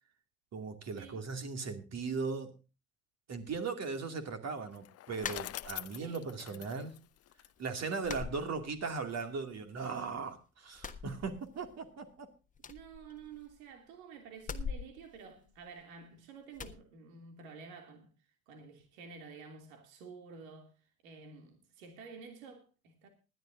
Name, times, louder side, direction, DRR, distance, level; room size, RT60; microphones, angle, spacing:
voice 1, 0.5-2.5 3.3-7.0 7.6-12.3, right 4 dB, 35° right, 2.6 m, -38 dB
Bicycle, 4.7-7.9, left 14 dB, 35° left, 0.7 m, -45 dB
sound 1, 5.2-6.1 6.5-7.2 7.4-7.6 8.0-9.2 9.5-10.3 10.7-11.9 12.1-12.2 12.5-13.7 14.4-16.0 16.5-16.8, left 5 dB, 20° left, 1.3 m, -44 dB
voice 2, 5.9-6.8 12.7-18.1 18.5-20.7 21.0-23.1, right 5 dB, 70° right, 2.9 m, -51 dB
20.0 x 12.0 x 2.7 m
hypercardioid pair, 70°, 43 cm